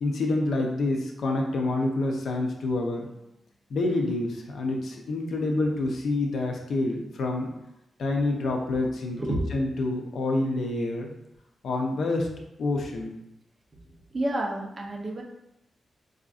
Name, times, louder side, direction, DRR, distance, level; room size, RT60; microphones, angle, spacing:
voice 1, 0.0-3.1 3.7-7.5 8.0-9.2 9.5-11.1 11.6-12.3 12.6-13.1, left 2 dB, 65° left, 2 dB, 0.5 m, -27 dB
voice 2, 9.2-9.7 14.1-15.2, right 1 dB, 30° right, -1 dB, 0.6 m, -30 dB
4.8 x 2.5 x 2.4 m, 0.85 s
wide cardioid pair, 170°, 0 cm